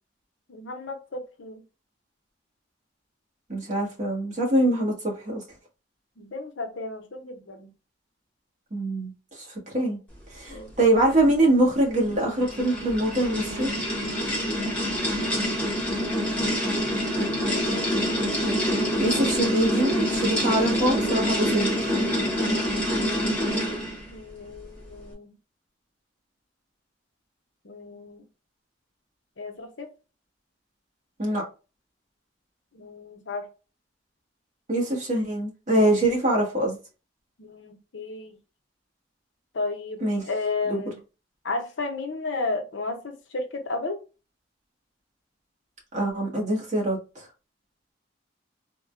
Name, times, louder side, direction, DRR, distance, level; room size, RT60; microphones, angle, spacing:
voice 1, 0.5-1.6 6.2-7.7 10.5-11.1 17.1-17.8 24.1-25.3 27.6-28.2 29.4-29.9 32.7-33.5 37.4-38.4 39.5-41.0 41.4-44.0, left 3 dB, 90° left, 0.8 m, -34 dB
voice 2, 3.5-5.4 8.7-9.4 9.7-10.0 10.3-13.7 19.0-21.9 31.2-31.4 34.7-36.8 40.0-40.2 40.7-40.8 45.9-47.0, right 1 dB, 40° right, 1.4 m, -24 dB
sound 1, 11.9-24.1, equal, 5° left, 1.0 m, -26 dB
3.6 x 2.2 x 2.5 m
head